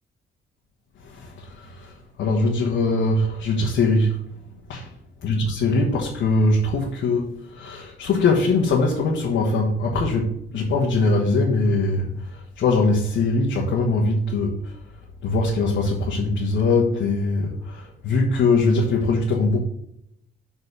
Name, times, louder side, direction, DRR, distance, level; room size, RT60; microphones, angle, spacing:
voice 1, 1.0-4.2 4.7-4.9 5.2-14.8 15.2-19.6, left 3 dB, 65° left, -2 dB, 1.4 m, -22 dB
6.4 x 4.3 x 5.5 m, 0.74 s
cardioid pair, 90°, 20 cm